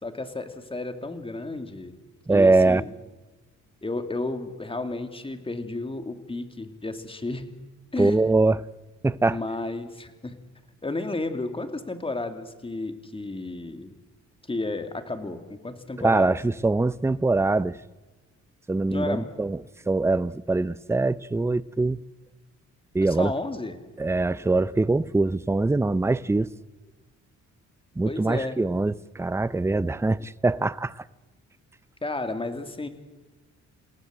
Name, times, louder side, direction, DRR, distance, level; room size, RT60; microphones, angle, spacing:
voice 1, 0.0-2.0 2.3-2.9 3.8-7.4 7.9-8.2 9.3-10.3 10.8-13.9 14.5-16.4 18.9-19.3 23.0-23.8 28.1-28.6 32.0-32.9, left 2 dB, 20° left, 2.9 m, -32 dB
voice 2, 2.3-2.8 8.0-8.6 9.0-9.4 16.0-17.8 18.7-19.6 19.9-22.0 22.9-23.3 24.0-26.5 28.0-31.0, right 3 dB, 10° right, 0.7 m, -23 dB
29.0 x 17.5 x 7.8 m
cardioid pair, 90°, 30 cm